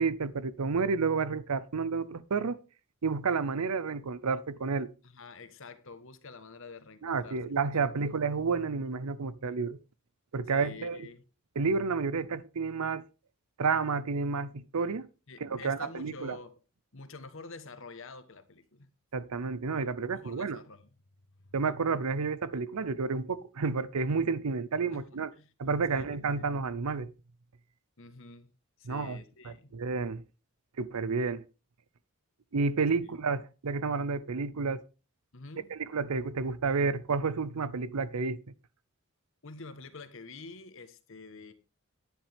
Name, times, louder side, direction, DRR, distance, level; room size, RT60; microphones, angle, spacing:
voice 1, 0.0-2.6 3.0-4.9 7.0-9.8 10.3-11.1 11.6-13.0 13.6-15.1 15.4-16.4 19.1-20.6 21.5-25.3 25.6-27.1 28.8-29.2 29.4-30.2 30.8-31.4 32.5-34.8 35.7-38.4, right 4 dB, 85° right, 0.6 m, -30 dB
voice 2, 5.0-8.2 10.5-11.2 15.3-16.6 16.9-18.9 20.1-20.9 24.9-25.5 25.9-26.5 28.0-28.5 28.8-29.7 33.0-33.1 35.3-35.7 39.4-41.5, left 3 dB, 60° left, 1.2 m, -48 dB
10.5 x 10.0 x 3.5 m
head